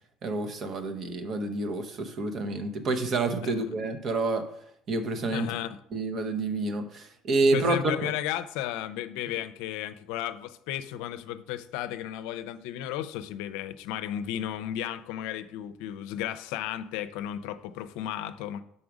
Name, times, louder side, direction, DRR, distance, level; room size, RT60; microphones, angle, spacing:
voice 1, 0.2-4.4 4.9-5.5 5.9-7.8 8.0-8.1, right 3 dB, 45° right, 7 dB, 1.0 m, -28 dB
voice 2, 5.3-5.8 7.5-18.6, left 11 dB, 80° left, 11 dB, 0.5 m, -34 dB
6.0 x 4.1 x 5.1 m, 0.75 s
supercardioid pair, 105°, 0 cm